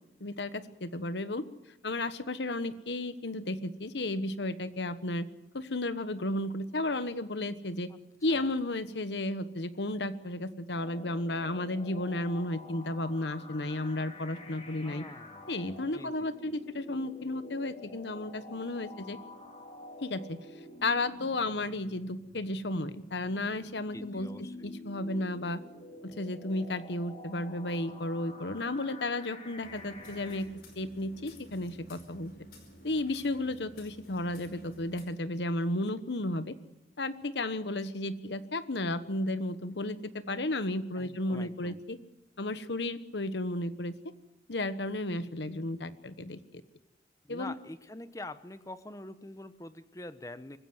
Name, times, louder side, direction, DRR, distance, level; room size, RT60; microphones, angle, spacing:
voice 1, 0.2-1.4 1.8-5.3 5.5-7.9 8.2-15.0 15.5-19.2 20.0-20.4 20.8-25.6 26.0-30.5 30.8-32.3 32.8-36.5 37.0-42.0 42.4-43.9 44.5-46.6 47.3-47.5, left 2 dB, 85° left, 13 dB, 1.2 m, -33 dB
sound 1, 10.8-30.4, left 2 dB, 35° left, 4.1 m, -48 dB
voice 2, 14.8-15.5 15.8-16.5 23.9-24.7 40.9-41.8 47.2-50.6, left 2 dB, 20° left, 12 dB, 0.9 m, -45 dB
sound 2, 29.6-35.0, equal, 60° left, 5.2 m, -52 dB
24.5 x 15.5 x 7.9 m, 1.0 s
head